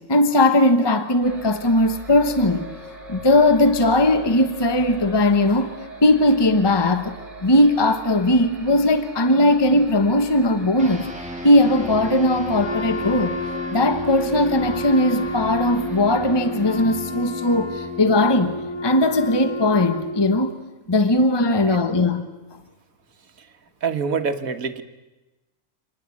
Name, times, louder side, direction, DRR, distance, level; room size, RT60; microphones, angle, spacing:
voice 1, 0.1-2.7 3.1-5.7 6.0-7.1 7.4-11.1 11.4-13.4 13.7-18.6 18.8-20.5 20.9-22.3, left 1 dB, 20° left, 9 dB, 1.1 m, -18 dB
sound 1, 1.2-16.8, right 1 dB, 30° right, 3.7 m, -41 dB
sound 2, 10.8-20.5, left 1 dB, 5° right, 2.2 m, -35 dB
Wind instrument woodwind instrument, 12.6-20.5, left 2 dB, 90° left, 1.9 m, -31 dB
voice 2, 23.8-24.8, right 5 dB, 80° right, 8 dB, 1.7 m, -25 dB
26.5 x 20.0 x 8.5 m, 1.1 s
omnidirectional pair, 1.4 m